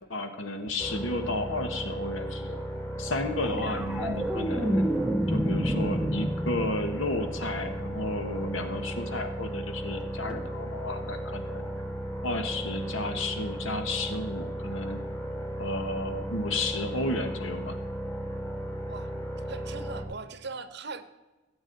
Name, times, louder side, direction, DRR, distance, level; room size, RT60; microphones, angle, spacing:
voice 1, 0.1-2.6 3.0-4.9 5.3-11.7 12.2-15.1 15.6-17.8, left 2 dB, 70° left, 7 dB, 1.4 m, -32 dB
sound 1, 0.8-20.0, right 1 dB, 10° left, 1.6 m, -35 dB
sound 2, 3.4-7.9 10.3-10.5, equal, 5° right, 0.6 m, -30 dB
voice 2, 19.4-21.0, right 4 dB, 55° right, 11 dB, 0.9 m, -40 dB
16.0 x 8.3 x 4.1 m, 1.2 s
head